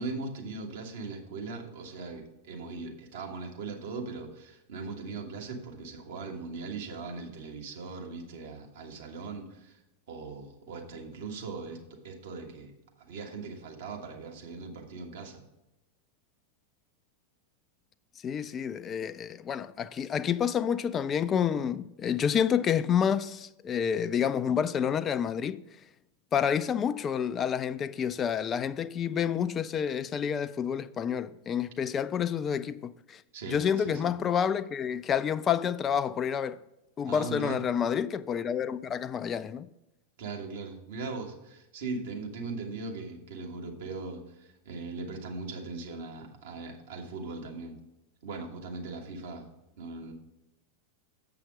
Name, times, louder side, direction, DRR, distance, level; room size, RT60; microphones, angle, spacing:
voice 1, 0.0-9.8 10.1-11.8 12.0-12.7 13.0-15.4 33.3-34.1 37.1-37.6 40.2-47.8 48.2-49.5 49.8-50.1, right 3 dB, 55° right, 1.4 m, -39 dB
voice 2, 18.2-25.6 26.3-33.2 33.5-36.6 37.0-39.7, left 8 dB, 25° left, 0.3 m, -29 dB
7.6 x 5.8 x 5.1 m
figure-of-eight pair, 90°, 0 cm